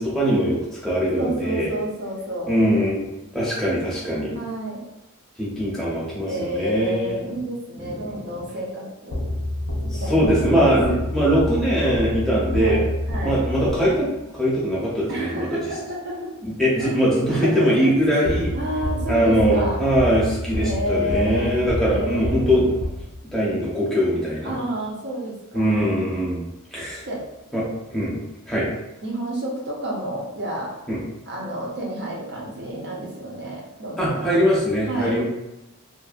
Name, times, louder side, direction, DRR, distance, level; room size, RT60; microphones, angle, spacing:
voice 1, 0.0-1.7 2.5-3.0 3.3-4.4 5.4-7.2 7.9-8.0 9.8-12.8 13.2-14.1 14.3-15.6 16.4-18.5 19.1-22.7 23.3-24.5 25.5-26.5 26.7-27.0 27.5-27.6 27.9-28.2 28.5-28.7 30.9-31.0 34.0-35.2, equal, ahead, -8 dB, 0.7 m, -21 dB
voice 2, 1.2-2.5 4.3-4.8 6.3-9.2 9.9-11.0 12.5-13.5 15.1-16.3 16.7-16.9 17.3-18.3 18.5-19.8 20.5-22.7 24.4-25.8 27.0-27.2 29.0-30.8 31.3-34.3 34.9-35.2, right 1 dB, 55° right, -3 dB, 0.6 m, -30 dB
sound 1, 9.1-14.2 18.2-23.5, left 1 dB, 50° left, 0.4 m, -28 dB
2.5 x 2.1 x 2.4 m, 0.92 s
head